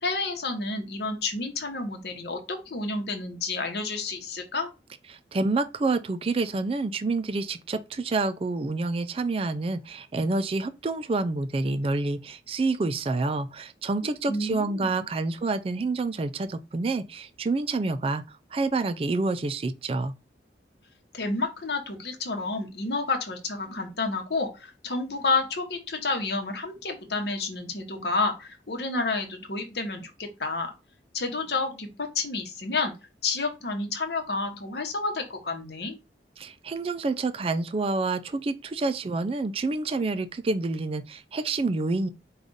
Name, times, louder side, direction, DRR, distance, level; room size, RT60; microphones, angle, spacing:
voice 1, 0.0-4.7 14.3-14.9 21.1-30.7 31.1-32.9 33.2-36.0, left 3 dB, 65° left, 1.0 m, -30 dB
voice 2, 5.1-20.1 36.4-42.1, right 3 dB, 30° right, 0.3 m, -28 dB
5.0 x 2.4 x 3.9 m
head